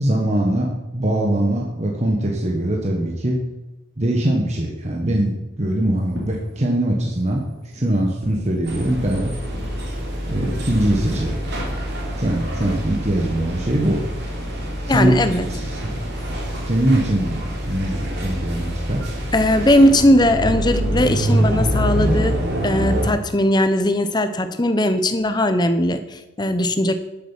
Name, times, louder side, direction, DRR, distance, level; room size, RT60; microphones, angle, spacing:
voice 1, 0.0-3.4 4.0-7.4 7.7-9.3 10.2-11.4 12.2-14.0 14.9-15.1 15.5-16.0 16.7-19.0, right 1 dB, 35° right, 0 dB, 1.2 m, -22 dB
Fireworks, 6.0-15.3, equal, 75° right, 3.0 m, -41 dB
sound 1, 8.7-23.1, equal, 55° right, 2.9 m, -25 dB
voice 2, 14.9-15.5 19.3-22.3 22.6-27.0, left 1 dB, 20° left, 9 dB, 0.7 m, -18 dB
12.0 x 7.3 x 5.6 m, 1.0 s
head